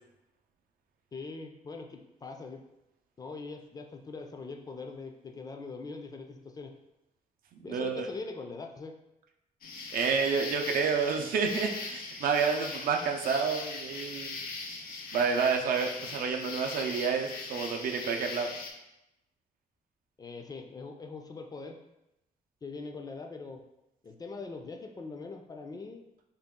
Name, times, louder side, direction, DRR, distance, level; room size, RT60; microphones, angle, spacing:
voice 1, 1.1-2.6 3.2-6.7 7.6-8.9 20.2-21.8 22.6-23.6 24.0-26.0, left 4 dB, 25° left, 3 dB, 0.3 m, -42 dB
voice 2, 7.7-8.1 9.9-14.4 15.1-18.5, right 5 dB, 75° right, 3 dB, 0.5 m, -29 dB
sound 1, 9.6-18.7, left 4 dB, 85° left, 0.5 m, -40 dB
3.9 x 2.3 x 3.5 m, 0.89 s
wide cardioid pair, 150°, 15 cm